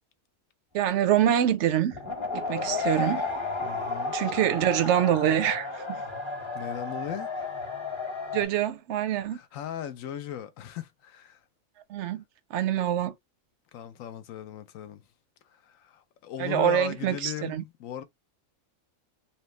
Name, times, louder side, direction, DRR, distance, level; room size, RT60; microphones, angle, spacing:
voice 1, 0.7-2.0 2.3-3.3 4.1-6.0 8.3-9.4 11.9-12.2 12.5-13.1 16.4-17.6, right 10 dB, 65° right, 0.8 m, -25 dB
sound 1, 1.9-8.5, left 4 dB, 25° left, 0.8 m, -32 dB
voice 2, 3.6-4.2 6.5-7.3 9.3-11.4 13.7-15.0 15.5-18.0, left 10 dB, 75° left, 0.9 m, -38 dB
3.0 x 2.2 x 3.0 m
omnidirectional pair, 1.4 m